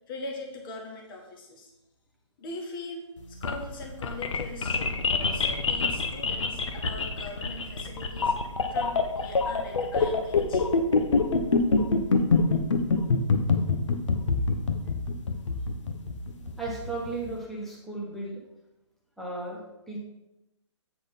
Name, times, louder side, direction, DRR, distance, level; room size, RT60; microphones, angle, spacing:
voice 1, 0.1-1.7 2.4-8.3 8.7-10.7, left 2 dB, 45° left, 0 dB, 1.9 m, -41 dB
sound 1, 3.2-17.3, left 4 dB, 75° left, 1.0 m, -25 dB
voice 2, 16.4-18.4 19.2-20.0, right 2 dB, ahead, -4 dB, 1.3 m, -36 dB
8.8 x 4.0 x 5.3 m, 0.94 s
hypercardioid pair, 150°, 16 cm